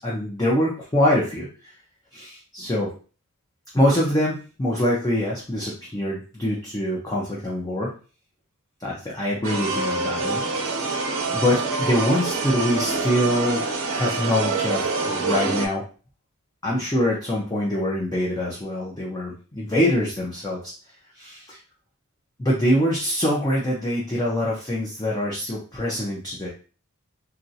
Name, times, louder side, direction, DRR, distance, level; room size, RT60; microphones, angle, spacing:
voice 1, 0.0-1.5 2.1-2.9 3.7-7.9 8.8-10.4 11.0-13.6 14.0-15.8 16.6-20.7 21.2-21.6 22.4-26.5, left 1 dB, 15° left, -5 dB, 0.6 m, -24 dB
sound 1, 9.4-15.7, right 3 dB, 65° right, 0.7 m, -26 dB
3.0 x 2.4 x 2.7 m, 0.37 s
head